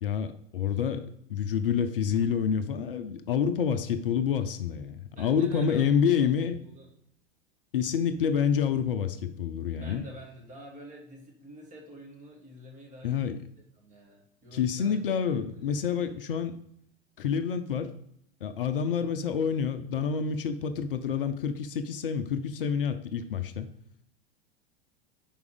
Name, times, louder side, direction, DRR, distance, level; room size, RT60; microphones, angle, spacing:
voice 1, 0.0-6.6 7.7-10.1 13.0-13.4 14.5-16.6 17.2-17.9 18.4-23.7, left 7 dB, 65° left, 10 dB, 0.6 m, -28 dB
voice 2, 5.2-6.3 6.6-6.9 9.8-13.2 13.8-15.0 15.3-16.3, equal, 25° right, -1 dB, 2.1 m, -48 dB
5.4 x 4.8 x 5.1 m, 0.71 s
figure-of-eight pair, 85°, 30 cm